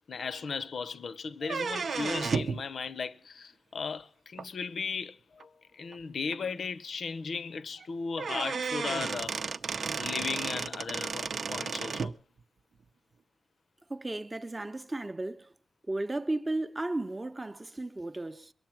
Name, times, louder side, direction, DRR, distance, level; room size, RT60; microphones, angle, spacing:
voice 1, 0.1-9.4 9.9-12.1, left 5 dB, 60° left, 0.7 m, -36 dB
sound 1, 1.4-2.6 4.4-4.5 5.4-5.5 5.9-6.0 6.3-6.4 7.8-7.9 8.2-12.1, right 5 dB, 60° right, 0.6 m, -33 dB
voice 2, 13.9-15.5 15.9-18.5, right 2 dB, 20° right, 0.7 m, -34 dB
22.5 x 8.2 x 5.9 m
wide cardioid pair, 155°, 0 cm